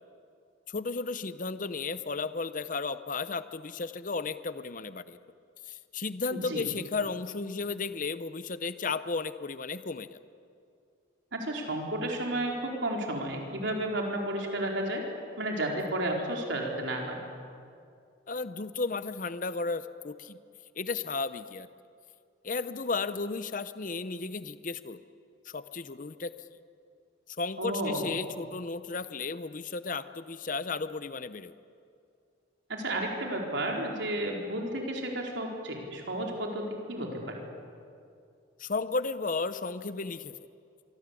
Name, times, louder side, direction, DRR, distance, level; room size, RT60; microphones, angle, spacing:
voice 1, 0.7-5.2 5.7-10.2 18.3-20.4 20.8-21.7 22.4-25.0 25.5-26.3 27.4-31.5 38.6-40.3, left 4 dB, 40° left, 12 dB, 0.8 m, -34 dB
voice 2, 6.3-6.7 11.3-15.0 15.4-17.2 27.6-28.1 32.7-37.4, right 1 dB, 65° right, 0 dB, 4.6 m, -32 dB
24.5 x 24.5 x 8.4 m, 2.4 s
head